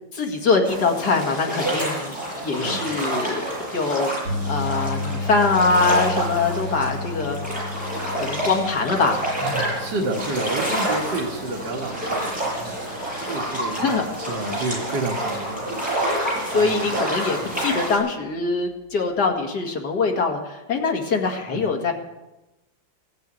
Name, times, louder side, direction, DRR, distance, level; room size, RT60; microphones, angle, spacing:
voice 1, 0.1-3.4 3.7-7.4 8.2-9.2 13.8-14.0 16.5-21.9, left 4 dB, 60° left, 2 dB, 2.5 m, -23 dB
sound 1, 0.6-18.0, right 1 dB, 5° right, 7.3 m, -28 dB
voice 2, 2.5-2.9 9.4-12.8 13.3-15.7 16.5-16.9 21.5-21.7, right 2 dB, 65° right, -2 dB, 2.3 m, -30 dB
sound 2, 4.3-16.5 16.8-17.1 19.3-19.4, left 3 dB, 75° left, 2.8 m, -34 dB
16.0 x 9.4 x 8.3 m, 1.0 s
omnidirectional pair, 2.1 m